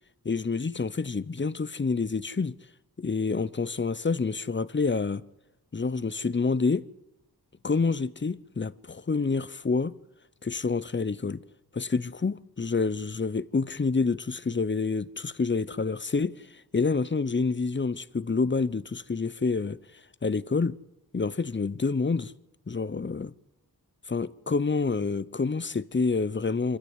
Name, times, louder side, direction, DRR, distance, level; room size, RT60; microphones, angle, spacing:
voice 1, 0.2-2.5 3.0-5.2 5.7-6.9 7.6-10.0 10.4-11.4 11.7-19.8 20.2-20.8 21.1-22.3 22.7-23.3 24.1-26.8, left 4 dB, 30° left, 0.7 m, -28 dB
25.0 x 13.5 x 8.1 m
wide cardioid pair, 65°, 36 cm